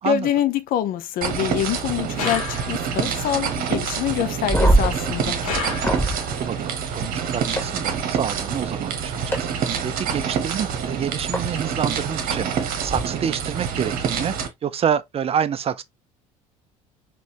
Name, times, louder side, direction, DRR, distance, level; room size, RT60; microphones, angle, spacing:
voice 1, 0.0-5.4, left 10 dB, 55° left, 0.6 m, -25 dB
sound 1, 1.2-14.5, right 7 dB, 55° right, 1.1 m, -27 dB
sound 2, 2.1-3.1 5.4-6.4, left 4 dB, 85° left, 1.1 m, -30 dB
sound 3, 4.4-6.2 7.6-7.7 9.3-9.4 11.3-11.4 12.8-13.0, right 1 dB, 15° left, 2.2 m, -21 dB
voice 2, 6.0-14.4 14.6-15.8, right 8 dB, 35° right, 0.5 m, -28 dB
4.1 x 3.0 x 2.9 m
hypercardioid pair, 60°, 18 cm